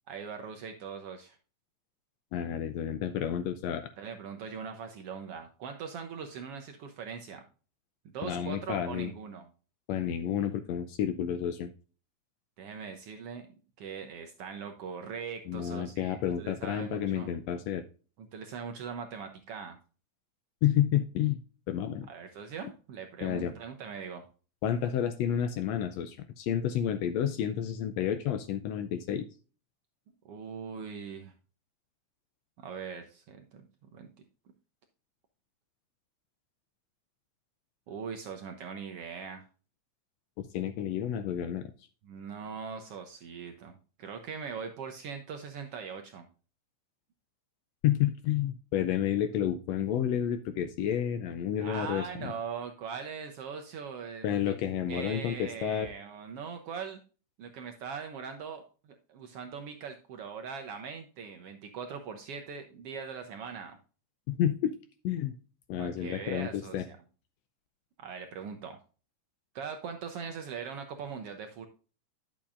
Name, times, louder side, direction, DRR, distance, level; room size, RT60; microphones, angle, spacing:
voice 1, 0.1-1.4 4.0-7.4 8.0-9.5 12.6-13.4 13.8-17.3 18.2-19.8 22.1-24.2 30.2-31.3 32.6-33.6 33.9-34.1 37.9-39.4 42.0-46.2 51.6-54.6 54.9-57.0 57.4-63.8 65.8-67.0 68.0-68.8 69.5-71.7, right 6 dB, 70° right, 5 dB, 1.4 m, -41 dB
voice 2, 2.3-3.9 8.2-9.1 9.9-11.7 15.5-17.8 20.6-21.4 21.7-22.1 23.2-23.5 24.6-29.3 40.4-41.7 47.8-52.3 54.2-55.9 64.3-64.8 65.0-65.3 65.7-66.9, left 10 dB, 80° left, 10 dB, 1.6 m, -30 dB
10.5 x 7.1 x 2.5 m, 0.36 s
omnidirectional pair, 3.4 m